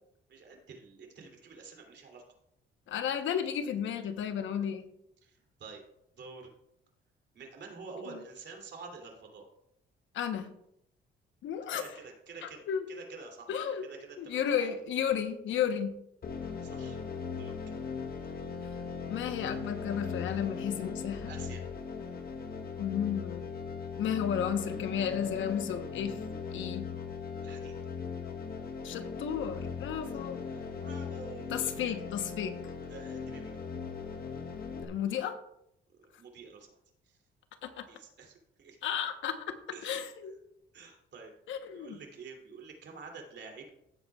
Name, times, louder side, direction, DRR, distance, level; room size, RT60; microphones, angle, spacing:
voice 1, 0.3-2.2 5.2-5.8 6.2-6.5 7.3-9.5 11.7-13.5 13.8-14.8 16.4-17.0 17.3-17.5 21.2-21.6 27.4-27.7 30.0-32.0 32.9-33.5 36.0-36.7 37.1-37.2 37.9-38.8 39.7-40.0 40.7-41.3 41.7-43.7, right 4 dB, 60° right, 2 dB, 2.9 m, -48 dB
voice 2, 2.9-4.9 10.1-10.5 11.4-11.8 12.4-12.8 13.5-13.8 14.2-16.0 19.1-21.3 22.8-23.5 24.0-26.2 26.5-26.9 28.8-30.4 31.5-32.6 34.8-35.4 37.6-37.9 38.8-39.6 39.8-40.3 41.5-42.0, left 8 dB, 75° left, 9 dB, 1.0 m, -33 dB
sound 1, 16.2-34.9, left 5 dB, 50° left, 1.1 m, -39 dB
16.0 x 8.1 x 2.4 m, 0.78 s
cardioid pair, 90°, 20 cm